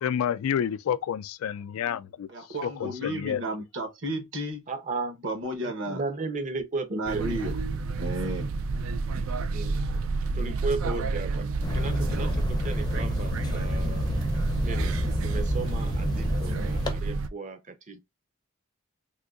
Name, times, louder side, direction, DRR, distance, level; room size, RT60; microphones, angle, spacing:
voice 1, 0.0-2.3 2.6-3.4, left 8 dB, 85° left, 0.3 m, -29 dB
voice 2, 2.3-4.6 5.2-6.0 6.9-7.6 8.0-8.5, right 1 dB, 60° right, 1.1 m, -32 dB
voice 3, 4.7-5.2 5.6-7.3 9.5-9.8 10.3-12.3 12.6-14.1 14.6-18.0, right 3 dB, 35° right, 0.6 m, -35 dB
sound 1, 7.1-17.3, right 3 dB, 75° right, 0.4 m, -30 dB
sound 2, 11.6-16.9, left 1 dB, 20° left, 0.5 m, -30 dB
3.6 x 2.6 x 2.3 m
head